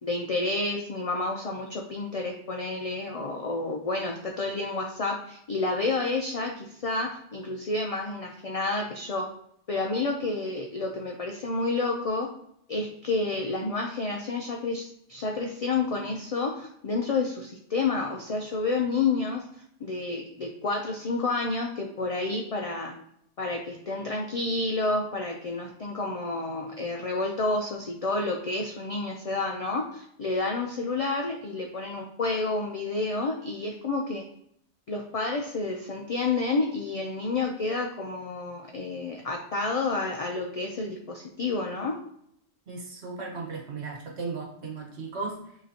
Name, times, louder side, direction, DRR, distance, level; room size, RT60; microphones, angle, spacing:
voice 1, 0.0-9.3 9.7-12.3 12.7-19.5 19.8-22.9 23.4-34.2 34.9-42.0, left 3 dB, 50° left, 1 dB, 0.4 m, -30 dB
voice 2, 42.7-45.6, right 4 dB, 70° right, 0 dB, 1.4 m, -36 dB
6.5 x 3.0 x 2.7 m, 0.71 s
omnidirectional pair, 1.2 m